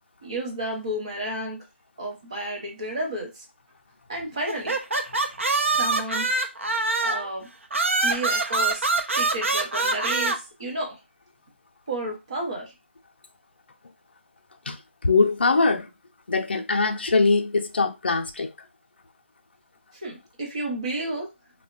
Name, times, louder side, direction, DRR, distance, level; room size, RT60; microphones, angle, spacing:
voice 1, 0.2-1.6 2.0-3.4 4.1-4.8 5.8-6.3 7.0-7.5 8.0-10.9 11.9-12.7 19.9-21.3, right 1 dB, 30° right, 0.8 m, -32 dB
sound 1, 4.5-7.3 7.7-10.4, right 3 dB, 85° right, 0.6 m, -24 dB
voice 2, 15.0-15.9 16.3-18.5, left 3 dB, 55° left, 0.4 m, -22 dB
3.1 x 2.1 x 2.4 m
figure-of-eight pair, 175°, 7 cm